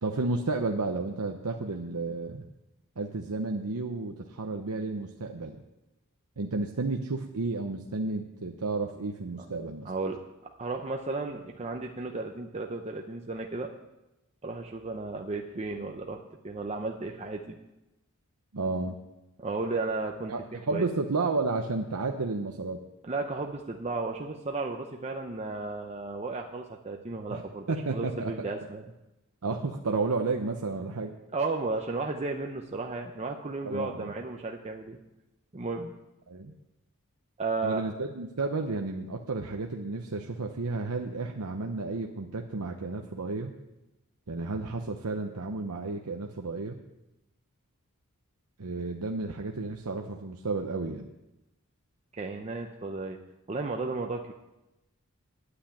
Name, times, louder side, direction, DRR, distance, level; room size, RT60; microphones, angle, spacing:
voice 1, 0.0-2.4 3.0-5.6 6.4-9.9 18.5-19.0 20.3-22.8 27.3-27.4 27.7-28.3 29.4-31.1 33.6-34.1 36.3-36.5 37.6-43.5 44.3-46.8 48.6-51.1, right 3 dB, 80° right, 2 dB, 0.9 m, -32 dB
voice 2, 9.8-10.2 10.6-13.7 14.4-17.5 19.4-20.3 20.7-20.8 23.0-28.8 31.3-35.0 35.5-35.9 37.4-37.8 52.1-53.2 53.5-54.3, right 3 dB, 30° right, 2 dB, 0.7 m, -34 dB
9.8 x 8.9 x 8.6 m, 0.97 s
head